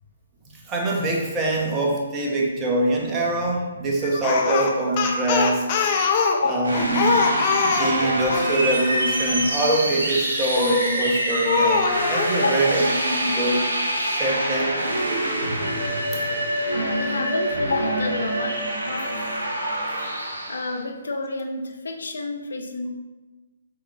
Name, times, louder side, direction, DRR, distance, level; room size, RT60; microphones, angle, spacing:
voice 1, 0.7-5.9 6.5-7.2 7.6-13.6 14.0-14.8 16.1-16.2, right 1 dB, 20° right, -2 dB, 1.1 m, -24 dB
Speech, 4.2-8.5 10.6-11.0 11.4-12.3, left 5 dB, 35° left, 0.8 m, -23 dB
voice 2, 6.3-6.8 12.3-12.5 16.7-19.3 20.5-22.9, left 3 dB, 70° left, 3 dB, 0.9 m, -29 dB
sound 1, 6.6-20.8, right 1 dB, 70° right, 1.8 m, -25 dB
7.6 x 4.2 x 3.1 m, 1.2 s
figure-of-eight pair, 135°, 0 cm